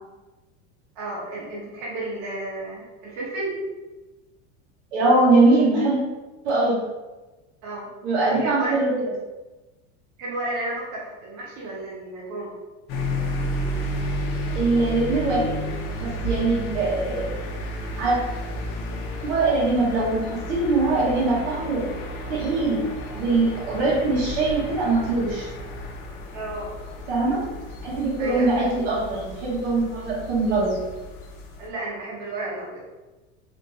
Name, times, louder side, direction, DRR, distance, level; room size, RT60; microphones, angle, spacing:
voice 1, 0.9-3.6 7.6-7.9 8.2-8.7 10.2-12.5 26.3-26.7 28.2-28.7 31.6-32.8, right 2 dB, 45° right, -5 dB, 0.9 m, -32 dB
voice 2, 4.9-6.0 6.4-6.8 8.0-8.9 14.5-15.6 16.0-17.3 18.0-18.2 19.2-20.2 20.5-21.8 22.3-22.8 23.1-25.5 27.1-27.4 27.8-30.8, right 2 dB, 90° right, -5 dB, 1.4 m, -22 dB
sound 1, 12.9-31.7, equal, 60° left, 0.6 m, -32 dB
3.4 x 2.6 x 3.0 m, 1.1 s
supercardioid pair, 175°, 34 cm